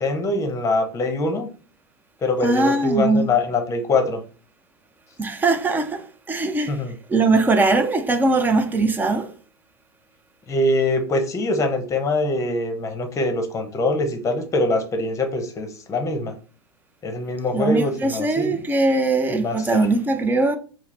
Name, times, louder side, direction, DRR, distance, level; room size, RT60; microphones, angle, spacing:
voice 1, 0.0-1.5 2.2-4.2 6.7-6.9 10.5-16.3 17.0-18.6 19.3-19.8, left 2 dB, 20° left, 0.9 m, -23 dB
voice 2, 2.4-3.3 5.2-6.8 7.1-9.3 17.5-20.6, right 3 dB, 15° right, 0.6 m, -20 dB
4.6 x 2.1 x 3.2 m
hypercardioid pair, 100°, 14 cm